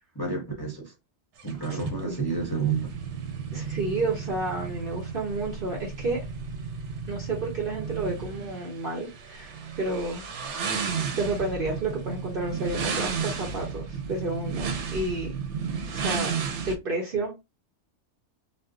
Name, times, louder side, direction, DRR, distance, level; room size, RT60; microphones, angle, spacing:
voice 1, 0.1-0.9 1.4-2.9, right 5 dB, 25° left, 0.5 m, -30 dB
sound 1, 1.4-16.8, right 6 dB, 85° right, 0.9 m, -33 dB
voice 2, 1.7-2.2 3.5-6.2 7.1-10.2 11.2-15.3 15.9-16.3 16.7-17.4, right 2 dB, 55° right, 0.9 m, -31 dB
2.5 x 2.1 x 3.5 m
omnidirectional pair, 1.2 m